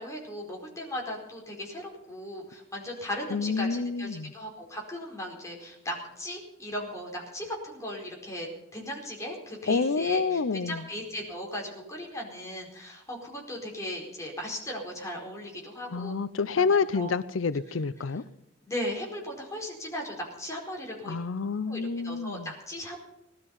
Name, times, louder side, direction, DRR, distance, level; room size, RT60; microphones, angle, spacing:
voice 1, 0.0-16.1 16.6-17.1 18.6-21.1 21.7-23.0, equal, 15° left, -1 dB, 4.6 m, -37 dB
voice 2, 3.3-4.3 9.7-10.8 15.9-18.2 21.1-22.5, left 4 dB, 90° left, 15 dB, 0.6 m, -28 dB
19.0 x 12.5 x 5.6 m, 0.86 s
head